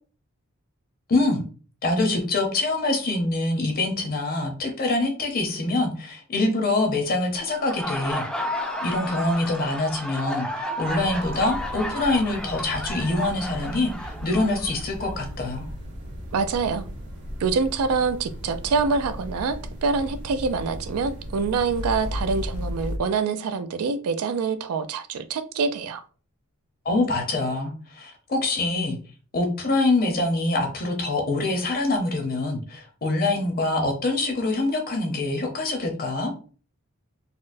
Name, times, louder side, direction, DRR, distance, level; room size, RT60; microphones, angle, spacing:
voice 1, 1.1-1.4 1.8-8.2 8.8-15.7 26.8-29.0 29.3-36.3, left 2 dB, 45° left, 3 dB, 0.7 m, -25 dB
Laughter, 7.5-15.1, equal, 5° left, 0.4 m, -32 dB
sound 1, 10.9-23.0, equal, 55° right, 1.1 m, -37 dB
voice 2, 16.3-16.9 17.4-26.0, right 4 dB, 70° right, 11 dB, 0.4 m, -25 dB
sound 2, 21.8-23.0, left 1 dB, 70° left, 0.4 m, -30 dB
4.1 x 2.0 x 2.5 m, 0.39 s
head